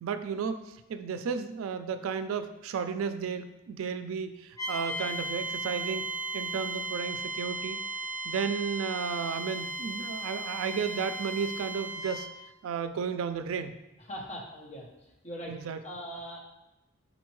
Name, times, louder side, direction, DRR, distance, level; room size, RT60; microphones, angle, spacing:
voice 1, 0.0-6.1 6.3-7.8 8.2-12.3 12.6-13.7 15.5-15.8, right 6 dB, 90° right, 9 dB, 0.3 m, -33 dB
sound 1, 4.6-12.3, right 3 dB, 15° left, 1.5 m, -36 dB
voice 2, 14.1-15.6 15.8-16.4, equal, 35° left, -1 dB, 0.8 m, -41 dB
4.2 x 4.0 x 3.1 m, 0.96 s
head